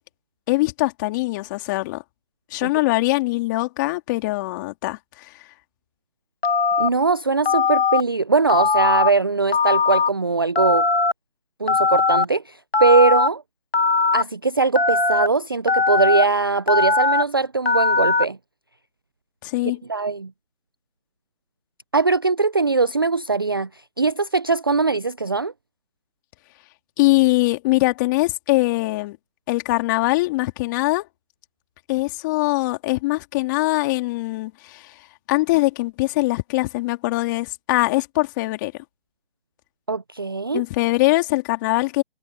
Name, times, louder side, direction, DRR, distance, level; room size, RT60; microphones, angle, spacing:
voice 1, 0.5-2.0 2.5-5.3 19.4-19.8 27.0-29.2 29.5-31.1 31.9-38.7 40.5-42.0, left 21 dB, 20° left, 3.0 m, -22 dB
Telephone, 6.4-6.9 7.5-8.0 8.5-9.1 9.5-10.1 10.6-11.1 11.7-12.3 12.7-13.3 13.7-14.2 14.8-15.3 15.7-16.2 16.7-17.2 17.7-18.2, left 4 dB, 75° left, 1.7 m, -19 dB
voice 2, 6.8-10.9 11.6-13.4 14.1-18.4 19.9-20.3 21.9-23.7 24.0-25.5 39.9-40.6, right 4 dB, 25° right, 0.5 m, -21 dB
figure-of-eight pair, 155°, 30 cm